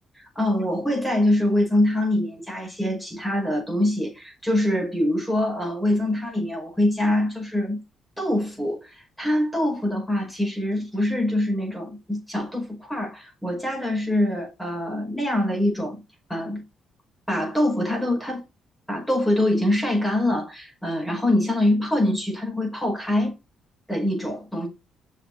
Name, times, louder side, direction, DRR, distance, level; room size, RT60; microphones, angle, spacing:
voice 1, 0.4-7.8 8.2-16.0 16.3-16.6 17.3-18.4 18.9-23.3 23.9-24.7, left 1 dB, 5° left, 5.6 m, -24 dB
7.1 x 6.4 x 4.1 m
cardioid pair, 90°, 0 cm